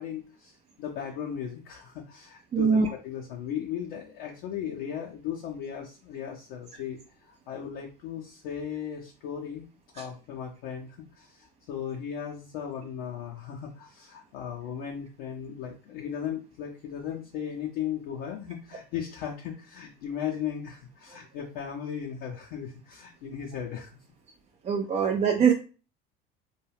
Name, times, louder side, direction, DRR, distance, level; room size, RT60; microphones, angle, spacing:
voice 1, 0.0-9.6 10.0-23.9, left 8 dB, 60° left, -1 dB, 0.6 m, -37 dB
voice 2, 2.5-2.9 24.7-25.5, right 6 dB, 25° right, 3 dB, 0.4 m, -22 dB
2.2 x 2.2 x 3.2 m, 0.35 s
hypercardioid pair, 70°, 29 cm